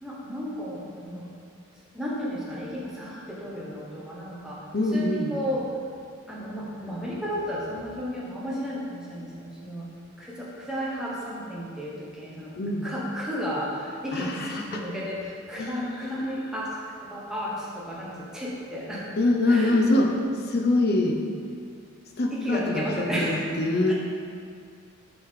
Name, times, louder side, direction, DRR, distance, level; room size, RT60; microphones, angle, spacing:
voice 1, 0.0-1.3 1.9-5.7 6.3-9.9 10.2-12.5 12.8-19.1 19.5-19.8 22.3-23.5 23.9-24.0, equal, 5° right, -6 dB, 1.2 m, -33 dB
voice 2, 4.7-5.3 12.6-12.9 14.1-14.8 15.6-16.2 19.2-20.1 20.5-21.2 22.2-23.9, left 2 dB, 45° left, 3 dB, 0.7 m, -24 dB
6.5 x 6.2 x 3.7 m, 2.2 s
head